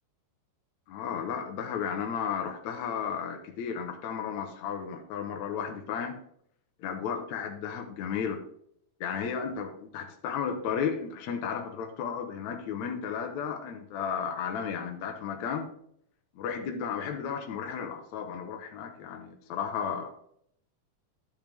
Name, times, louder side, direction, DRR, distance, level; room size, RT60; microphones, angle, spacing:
voice 1, 0.9-6.2 6.8-8.4 9.0-15.7 16.4-20.1, left 7 dB, 65° left, 3 dB, 2.3 m, -34 dB
12.0 x 5.8 x 3.5 m, 0.68 s
omnidirectional pair, 3.8 m